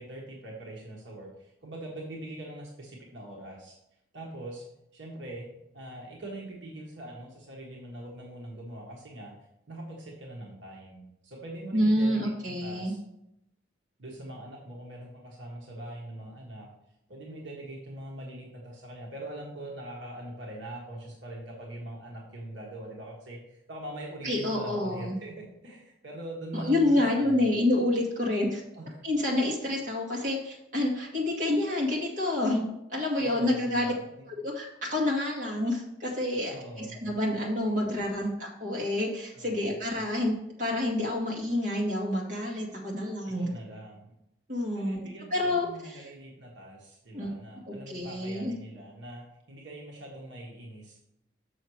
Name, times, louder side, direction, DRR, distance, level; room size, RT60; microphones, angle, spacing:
voice 1, 0.0-3.8 4.1-4.7 4.9-5.5 5.7-9.3 9.7-13.0 14.0-16.7 17.1-27.5 28.7-29.0 29.4-29.5 33.2-34.2 36.5-37.0 39.3-39.7 43.4-44.1 44.7-51.0, right 1 dB, 70° right, -2 dB, 1.4 m, -42 dB
voice 2, 11.7-12.9 24.2-25.2 26.5-28.6 29.0-32.6 32.9-33.9 34.4-43.5 44.5-45.0 45.3-46.0 47.1-47.3 47.7-48.5, left 1 dB, 40° right, -3 dB, 2.0 m, -28 dB
6.5 x 6.3 x 4.7 m, 0.83 s
head